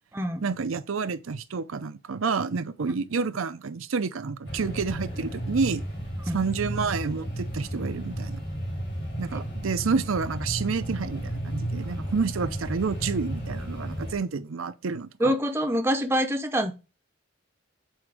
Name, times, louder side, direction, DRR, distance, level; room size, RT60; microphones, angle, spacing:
voice 1, 0.4-5.8 6.3-8.4 9.2-15.3, right 5 dB, 75° right, 0.6 m, -29 dB
sound 1, 4.4-14.1, right 1 dB, 60° left, 4.1 m, -33 dB
voice 2, 15.2-16.7, equal, 10° right, 0.7 m, -25 dB
7.8 x 4.4 x 4.8 m
head